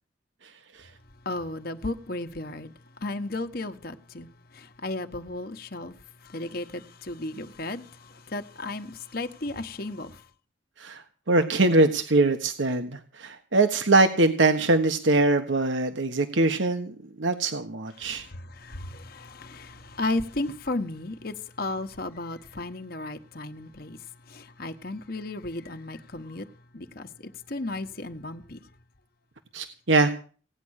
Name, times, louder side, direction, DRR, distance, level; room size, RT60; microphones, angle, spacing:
voice 1, 1.2-2.7 3.0-4.3 4.5-5.9 6.2-10.2 18.0-24.0 24.3-26.4 26.7-28.6, left 2 dB, 50° left, 1.2 m, -34 dB
voice 2, 11.3-16.9 17.2-18.2 29.5-30.1, right 2 dB, 85° right, 1.4 m, -22 dB
17.5 x 9.9 x 6.5 m
head